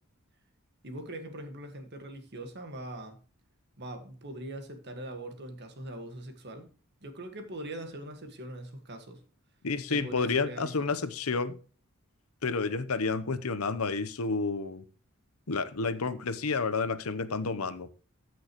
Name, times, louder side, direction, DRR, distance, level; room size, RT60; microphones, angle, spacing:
voice 1, 0.8-3.2 3.8-6.7 7.0-9.2 9.9-11.0, right 1 dB, 50° right, 1.7 m, -41 dB
voice 2, 9.6-11.6 12.4-14.8 15.5-17.9, left 4 dB, 85° left, 0.9 m, -30 dB
14.5 x 6.2 x 3.1 m
head